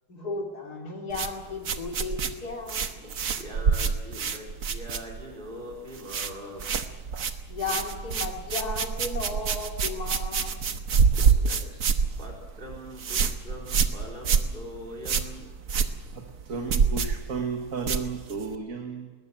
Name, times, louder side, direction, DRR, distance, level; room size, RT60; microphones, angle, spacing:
voice 1, 0.1-2.9 7.5-11.1, left 3 dB, 70° left, 1 dB, 4.0 m, -35 dB
sound 1, 1.1-5.5 5.7-6.3 6.6-18.6, right 6 dB, 70° right, 1.8 m, -27 dB
voice 2, 3.0-6.7 11.1-11.8 12.2-15.5, equal, 30° right, -1 dB, 4.7 m, -42 dB
voice 3, 16.1-19.1, right 5 dB, 55° right, 4 dB, 2.1 m, -33 dB
21.0 x 20.0 x 7.6 m, 1.4 s
omnidirectional pair, 1.7 m